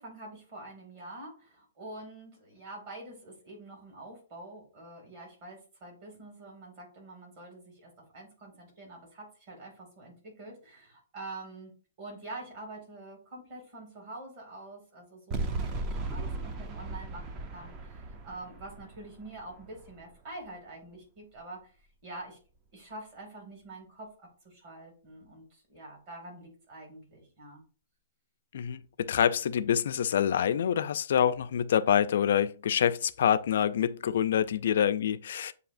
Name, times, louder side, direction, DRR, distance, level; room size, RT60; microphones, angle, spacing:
voice 1, 0.0-21.8 22.0-22.4 22.7-27.6, right 2 dB, 35° right, 2.1 m, -46 dB
sound 1, 15.3-20.5, right 3 dB, 20° right, 0.4 m, -37 dB
voice 2, 28.5-35.5, left 9 dB, 60° left, 0.3 m, -26 dB
7.8 x 2.7 x 2.5 m
hypercardioid pair, 165°, 0 cm